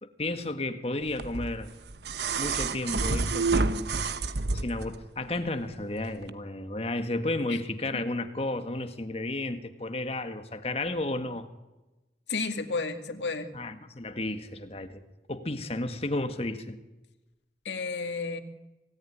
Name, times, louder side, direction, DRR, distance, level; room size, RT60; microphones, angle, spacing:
voice 1, 0.0-1.7 2.4-3.9 4.5-11.5 13.5-15.0 15.3-16.8, left 2 dB, 35° left, 8 dB, 1.8 m, -33 dB
sound 1, 1.2-5.0 6.2-6.3, right 3 dB, 70° right, 1.1 m, -29 dB
voice 2, 12.3-13.5 17.6-18.4, left 4 dB, 80° left, 5 dB, 2.2 m, -32 dB
25.5 x 18.0 x 10.0 m, 1.1 s
head